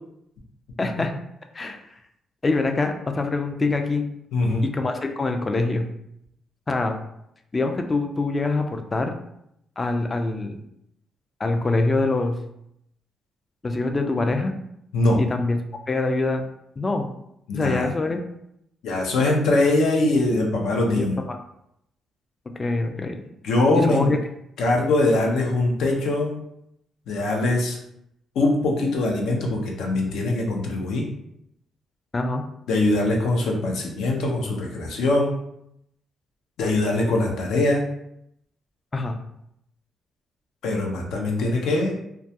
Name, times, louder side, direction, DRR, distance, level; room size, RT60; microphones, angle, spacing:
voice 1, 0.8-1.1 1.5-1.8 2.4-4.1 4.6-5.9 6.7-7.0 7.5-9.1 9.8-10.6 11.4-12.4 13.6-14.5 15.2-15.6 15.9-16.4 16.8-17.1 17.5-18.2 21.0-21.4 22.6-23.2 23.7-24.2 32.1-32.4 38.9-39.2, left 3 dB, 25° left, 5 dB, 0.3 m, -24 dB
voice 2, 4.3-4.6 14.9-15.2 17.5-17.9 18.8-21.2 23.4-24.1 24.6-26.4 27.1-27.8 28.4-31.1 32.7-35.4 36.6-37.8 40.6-42.0, left 2 dB, 80° left, 0 dB, 0.6 m, -22 dB
2.3 x 2.2 x 2.7 m, 0.77 s
cardioid pair, 90°, 0 cm